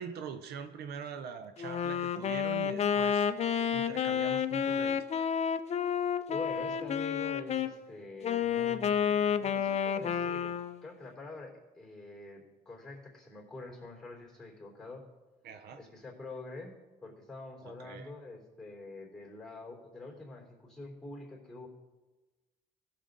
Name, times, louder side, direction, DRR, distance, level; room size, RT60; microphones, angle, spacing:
voice 1, 0.0-3.3 3.7-5.0 15.4-15.8 17.6-18.1, right 6 dB, 70° right, 8 dB, 0.7 m, -43 dB
Wind instrument woodwind instrument, 1.6-7.7 8.2-10.9, left 7 dB, 40° left, 0.5 m, -30 dB
voice 2, 6.3-10.6 10.8-15.0 15.8-16.7 17.0-21.7, left 3 dB, ahead, 0 dB, 3.3 m, -46 dB
15.0 x 6.8 x 3.9 m, 1.2 s
cardioid pair, 110°, 17 cm